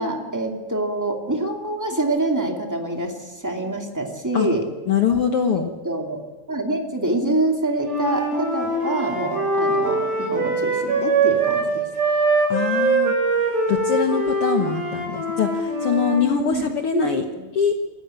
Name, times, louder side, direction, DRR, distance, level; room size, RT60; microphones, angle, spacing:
voice 1, 0.0-4.7 5.5-6.2 6.5-11.8 16.4-16.7 16.9-17.5, right 1 dB, 5° right, 2 dB, 1.9 m, -26 dB
voice 2, 4.9-5.7 12.5-13.1 13.7-17.2 17.5-17.7, left 7 dB, 65° left, 5 dB, 1.4 m, -23 dB
Wind instrument woodwind instrument, 7.8-11.7 11.9-16.3, right 3 dB, 80° right, 8.1 m, -22 dB
25.0 x 14.5 x 8.9 m, 1.3 s
omnidirectional pair, 4.2 m